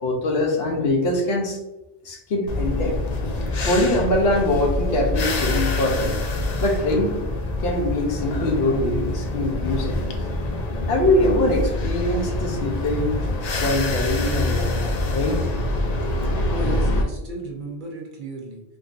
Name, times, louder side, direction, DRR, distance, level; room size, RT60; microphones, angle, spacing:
voice 1, 0.0-1.6 2.0-3.0 3.7-6.2 6.6-7.1 7.6-10.1 10.9-13.2 13.6-15.4, left 1 dB, 65° left, 1 dB, 0.9 m, -23 dB
sound 1, 2.5-17.0, left 2 dB, 50° left, 0.5 m, -25 dB
voice 2, 16.5-18.6, right 1 dB, 55° right, -1 dB, 0.8 m, -33 dB
3.7 x 2.6 x 2.4 m, 0.99 s
omnidirectional pair, 1.1 m